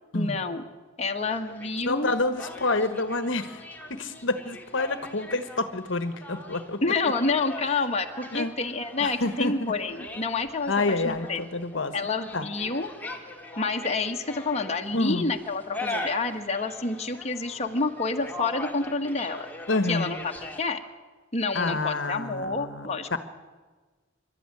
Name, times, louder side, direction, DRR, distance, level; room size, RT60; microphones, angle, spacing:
voice 1, 0.1-0.6 1.0-2.1 6.8-11.4 11.9-12.9 13.6-19.5 19.9-20.3 20.6-20.8 21.3-23.2, left 3 dB, 35° left, 3 dB, 1.6 m, -28 dB
sound 1, 1.2-20.6, left 2 dB, 10° left, 2.4 m, -41 dB
voice 2, 1.8-3.6 3.9-6.8 8.3-8.5 9.0-9.7 10.7-11.9 12.3-12.4 14.9-15.3 19.7-20.1 21.5-23.2, left 2 dB, 70° left, 10 dB, 1.3 m, -28 dB
27.5 x 12.5 x 9.8 m, 1.3 s
head